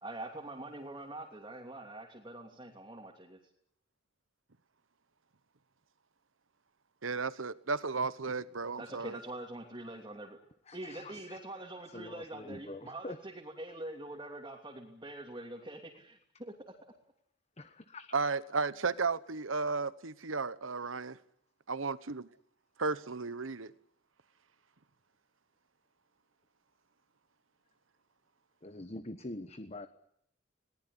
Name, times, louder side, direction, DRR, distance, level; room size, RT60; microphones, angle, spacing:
voice 1, 0.0-3.4 8.8-10.4 10.7-13.3 13.6-16.5, right 1 dB, 25° right, 3.0 m, -44 dB
voice 2, 7.0-9.2 18.1-21.2 21.7-22.2 22.8-23.7, right 4 dB, 85° right, 1.1 m, -34 dB
voice 3, 10.6-11.4 11.8-13.2 13.7-13.8 17.6-18.2 28.6-29.9, left 2 dB, 30° left, 1.2 m, -45 dB
22.0 x 19.0 x 10.0 m
head